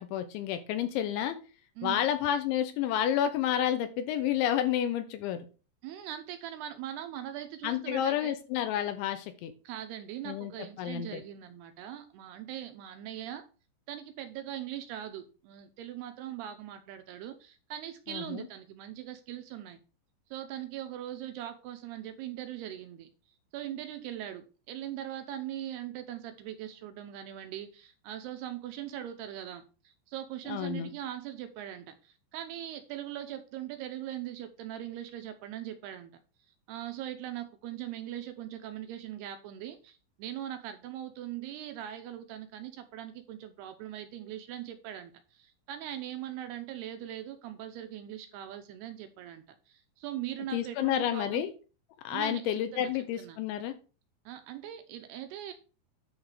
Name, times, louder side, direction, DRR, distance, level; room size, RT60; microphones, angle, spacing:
voice 1, 0.0-1.4 1.8-5.5 7.6-9.5 10.3-10.5 10.8-11.2 18.1-18.4 30.5-30.9 50.5-51.5 52.0-53.7, left 10 dB, 80° left, 9 dB, 3.2 m, -30 dB
voice 2, 5.8-8.4 9.6-13.4 13.9-19.8 20.3-23.1 23.5-36.1 36.7-51.4 52.1-52.9 53.2-53.4 54.3-55.5, right 11 dB, 80° right, 8 dB, 2.4 m, -41 dB
10.5 x 3.9 x 6.5 m, 0.34 s
omnidirectional pair, 5.5 m